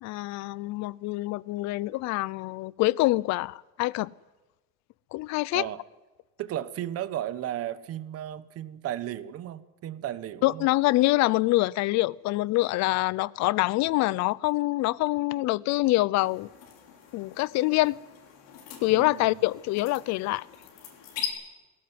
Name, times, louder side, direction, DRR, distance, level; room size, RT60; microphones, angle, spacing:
voice 1, 0.0-4.1 5.1-5.7 10.4-16.5 17.1-18.0 18.8-20.4, left 19 dB, 60° left, 0.6 m, -25 dB
voice 2, 6.4-10.7 18.9-19.5, right 12 dB, 50° right, 1.2 m, -35 dB
sound 1, 16.2-21.3, left 10 dB, 85° left, 5.7 m, -42 dB
20.0 x 17.5 x 9.6 m
cardioid pair, 150°, 31 cm